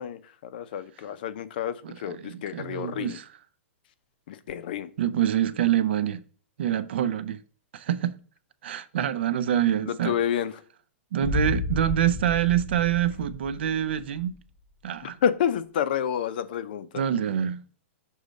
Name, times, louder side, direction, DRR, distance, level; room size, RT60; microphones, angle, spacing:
voice 1, 0.0-1.7 2.0-3.2 4.3-4.9 9.8-10.5 15.0-16.9, left 9 dB, 45° left, 0.6 m, -29 dB
voice 2, 1.8-3.4 5.0-6.2 6.6-7.4 7.7-8.2 8.6-10.2 11.1-14.3 14.8-15.2 16.9-17.6, right 10 dB, 55° right, 0.5 m, -26 dB
Boom, 11.2-14.2, left 2 dB, 10° right, 0.6 m, -32 dB
6.5 x 3.1 x 5.0 m
hypercardioid pair, 175°, 7 cm